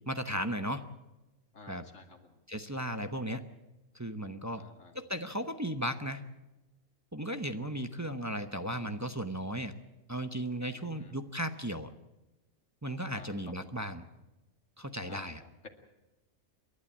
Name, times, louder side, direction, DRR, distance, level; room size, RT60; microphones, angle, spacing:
voice 1, 0.1-0.9 1.7-1.8 2.5-3.4 3.9-4.6 4.9-6.2 7.1-9.7 10.1-11.9 12.8-14.0 14.8-15.4, equal, 15° right, 8 dB, 0.7 m, -35 dB
voice 2, 1.5-2.3 4.6-5.0 10.7-11.2 13.1-13.7 15.0-15.7, left 3 dB, 65° left, 4 dB, 2.6 m, -52 dB
28.5 x 12.0 x 8.7 m, 1.1 s
omnidirectional pair, 1.4 m